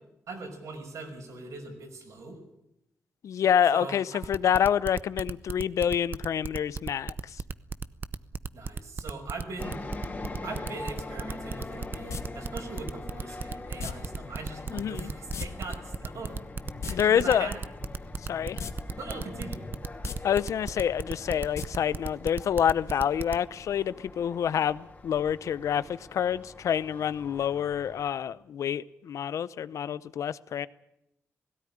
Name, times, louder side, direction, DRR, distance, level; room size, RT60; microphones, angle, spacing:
voice 1, 0.3-2.4 3.7-4.2 8.5-9.8 10.4-16.3 16.8-17.6 19.0-19.7, right 3 dB, 80° right, 3 dB, 5.6 m, -41 dB
voice 2, 3.2-7.4 14.7-15.1 16.9-17.5 18.2-18.6 20.2-30.7, left 9 dB, 80° left, 17 dB, 0.7 m, -27 dB
sound 1, 4.2-23.4, right 4 dB, 40° right, 0.7 m, -35 dB
sound 2, 9.6-28.1, left 2 dB, 30° left, 3.5 m, -43 dB
sound 3, 12.1-12.2 13.8-13.9 15.3-15.5 15.7-15.8 16.7-16.9 18.6-18.7 19.1-19.2 19.9-20.2 21.5-21.7 22.0-22.1, left 6 dB, 65° left, 1.4 m, -34 dB
17.5 x 16.0 x 10.0 m, 0.85 s
cardioid pair, 95°, 5 cm